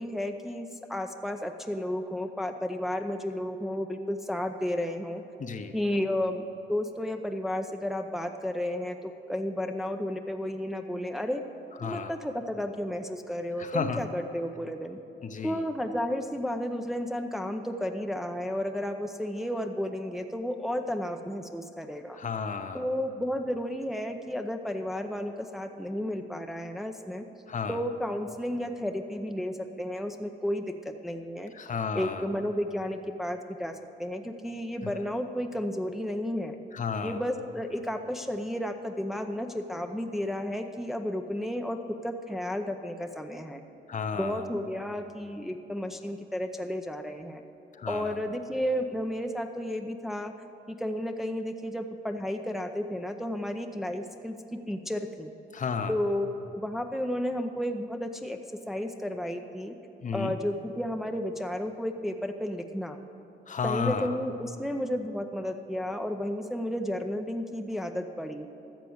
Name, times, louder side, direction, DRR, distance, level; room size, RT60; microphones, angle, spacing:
voice 1, 0.0-5.2 5.7-11.4 11.8-15.0 15.4-22.2 22.7-27.2 27.7-31.5 31.9-36.5 37.0-41.8 42.0-43.6 44.2-47.4 47.9-50.3 50.7-55.3 55.9-58.4 58.7-59.8 60.1-63.0 63.6-68.5, left 1 dB, ahead, 5 dB, 0.6 m, -32 dB
voice 2, 5.4-5.7 11.8-12.1 13.6-14.0 15.2-15.6 22.1-22.8 27.5-27.8 31.5-32.3 34.8-34.9 36.7-37.2 43.9-44.4 47.8-48.2 55.5-55.9 60.0-60.4 63.5-64.2, left 6 dB, 40° left, 8 dB, 0.8 m, -32 dB
13.5 x 6.7 x 7.9 m, 2.9 s
cardioid pair, 90°, 20 cm